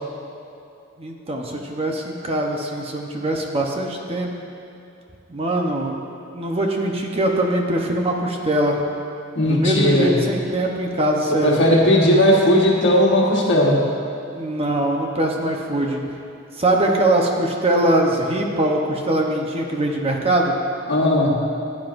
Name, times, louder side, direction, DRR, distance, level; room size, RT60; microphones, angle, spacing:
voice 1, 1.0-4.3 5.3-5.9 6.3-8.8 9.5-11.6 14.3-16.0 16.6-20.6, right 1 dB, 30° right, 1 dB, 0.9 m, -22 dB
voice 2, 9.3-10.1 11.3-13.8 20.9-21.4, left 1 dB, 55° left, -2 dB, 1.5 m, -17 dB
15.5 x 9.7 x 2.6 m, 2.7 s
head